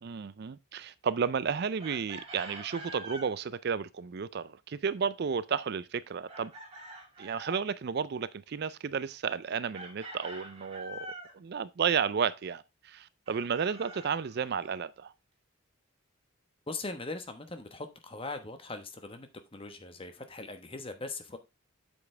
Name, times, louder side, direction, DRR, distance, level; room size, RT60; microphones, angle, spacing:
voice 1, 0.0-6.5 7.2-15.1, right 6 dB, 50° right, 0.4 m, -32 dB
Chicken rooster, 1.8-3.3 6.3-7.6 9.7-11.4 13.3-14.8, right 1 dB, 30° right, 2.6 m, -45 dB
voice 2, 16.7-21.4, left 3 dB, 25° left, 1.1 m, -40 dB
8.4 x 7.1 x 3.3 m
head